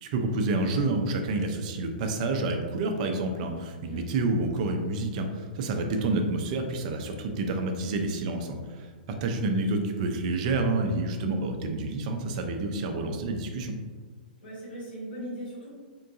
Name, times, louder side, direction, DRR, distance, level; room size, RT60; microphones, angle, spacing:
voice 1, 0.0-8.9 9.2-13.8, right 2 dB, 50° right, 4 dB, 0.5 m, -28 dB
voice 2, 14.4-15.7, equal, 90° left, -8 dB, 1.3 m, -40 dB
3.7 x 2.3 x 2.6 m, 1.5 s
hypercardioid pair, 125°, 5 cm